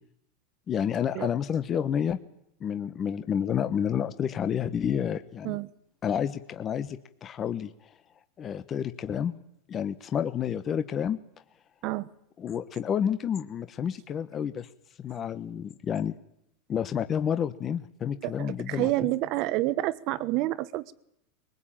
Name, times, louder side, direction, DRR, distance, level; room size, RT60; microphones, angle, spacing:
voice 1, 0.7-2.2 2.6-5.6 6.0-7.7 8.4-9.4 9.7-11.2 12.4-14.7 15.0-16.1 16.7-18.9, left 8 dB, 25° left, 10 dB, 1.1 m, -29 dB
voice 2, 18.2-20.9, right 17 dB, 45° right, 16 dB, 1.2 m, -28 dB
22.5 x 20.5 x 8.9 m, 0.75 s
supercardioid pair, 150°, 0 cm